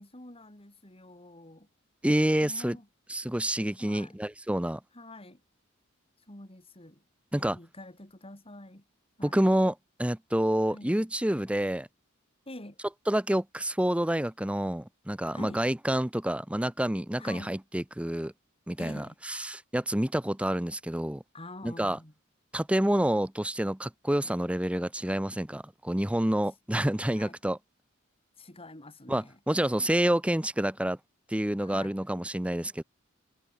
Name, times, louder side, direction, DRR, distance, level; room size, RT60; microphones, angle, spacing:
voice 1, 0.0-1.7 2.4-2.9 3.8-4.2 4.9-5.4 6.3-7.0 7.4-8.8 9.2-9.5 10.7-10.9 12.5-12.8 15.3-15.6 17.2-17.6 18.8-19.1 21.3-22.1 27.1-27.4 28.4-29.4 31.6-32.0, left 1 dB, 30° left, 4.8 m, -46 dB
voice 2, 2.0-2.8 3.1-4.8 7.3-7.6 9.2-11.9 13.1-18.3 18.7-21.2 21.6-22.0 22.5-27.6 29.1-31.0 31.3-32.8, right 1 dB, 5° right, 0.8 m, -28 dB
head